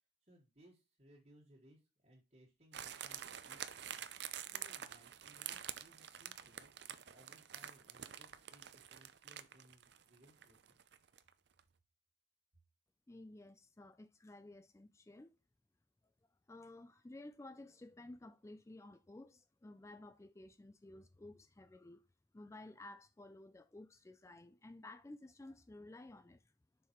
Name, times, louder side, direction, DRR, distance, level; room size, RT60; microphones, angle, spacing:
voice 1, 0.2-3.9 4.4-6.7 7.1-10.8, equal, 35° right, 1.6 m, -65 dB
sound 1, 2.7-11.3 11.6-11.7, right 10 dB, 55° right, 0.5 m, -48 dB
voice 2, 13.1-15.3 16.5-22.1 22.3-26.4, left 2 dB, 15° left, 0.3 m, -54 dB
7.0 x 5.8 x 3.1 m
head